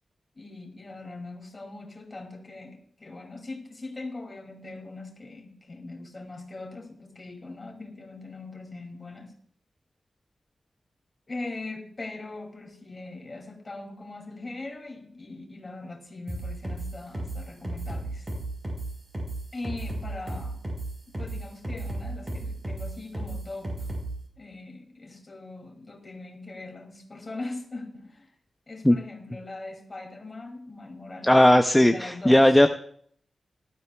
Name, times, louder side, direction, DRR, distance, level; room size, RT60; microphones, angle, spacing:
voice 1, 0.4-9.3 11.3-18.3 19.5-20.6 21.1-23.8 24.4-28.3 28.7-31.4 31.8-32.6, left 2 dB, 30° left, 2 dB, 2.4 m, -41 dB
sound 1, 16.3-24.2, right 2 dB, 25° right, 5.0 m, -34 dB
voice 2, 31.2-32.7, left 1 dB, 5° left, 6 dB, 0.4 m, -17 dB
18.0 x 12.5 x 2.2 m, 0.62 s
wide cardioid pair, 150°, 0 cm